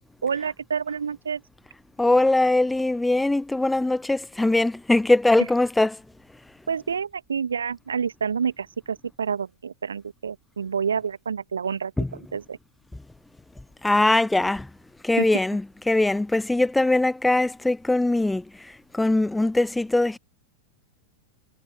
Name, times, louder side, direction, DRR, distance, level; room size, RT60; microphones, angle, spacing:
voice 1, 0.2-1.4 6.7-11.9 12.3-12.6 15.2-15.3, right 6 dB, 70° right, 1.4 m, -28 dB
voice 2, 2.0-6.0 12.0-12.1 13.8-14.7 15.0-18.4 18.9-20.2, left 2 dB, 5° left, 0.3 m, -21 dB
figure-of-eight pair, 90°, 0 cm